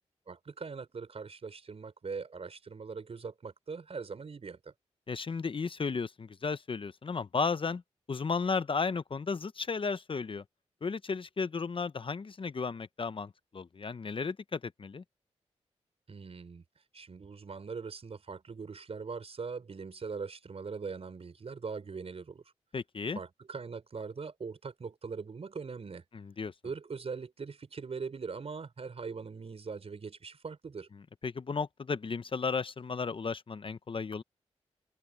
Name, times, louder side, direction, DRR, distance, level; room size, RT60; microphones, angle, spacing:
voice 1, 0.3-4.7 16.1-16.6 16.9-22.4 23.1-26.0 26.6-30.9, right 5 dB, 55° right, 4.6 m, -41 dB
voice 2, 5.1-7.8 8.1-10.4 10.8-15.0 22.7-23.2 26.1-26.5 31.2-34.2, left 5 dB, 45° left, 0.9 m, -34 dB
supercardioid pair, 45°, 12 cm